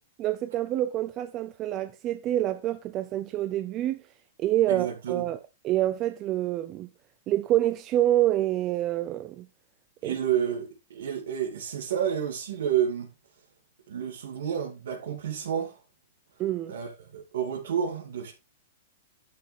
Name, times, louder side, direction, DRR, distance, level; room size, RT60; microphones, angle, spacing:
voice 1, 0.2-4.0 4.4-6.9 7.3-9.5 10.0-10.2 16.4-16.8, right 13 dB, 25° right, 0.4 m, -27 dB
voice 2, 4.7-5.2 10.0-13.1 13.9-15.8 16.7-18.3, right 9 dB, 80° right, 2.8 m, -30 dB
11.0 x 6.1 x 3.7 m
hypercardioid pair, 160°, 0 cm